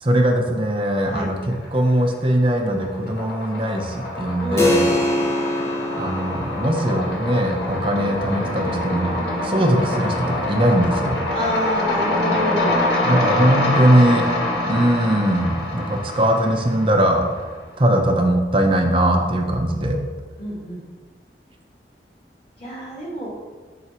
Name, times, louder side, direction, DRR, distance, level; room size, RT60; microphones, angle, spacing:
voice 1, 0.0-4.9 6.0-11.2 13.0-14.2 14.6-17.3 17.8-20.0, right 1 dB, 30° right, 3 dB, 0.6 m, -20 dB
sound 1, 1.3-2.0 2.3-17.5, left 1 dB, 80° left, 1.2 m, -25 dB
voice 2, 4.4-5.3 11.3-12.8 20.4-20.8 22.6-23.3, equal, 35° left, -5 dB, 1.9 m, -28 dB
Keyboard (musical), 4.6-14.8, left 1 dB, 15° left, 0.6 m, -29 dB
6.0 x 3.9 x 4.3 m, 1.5 s
head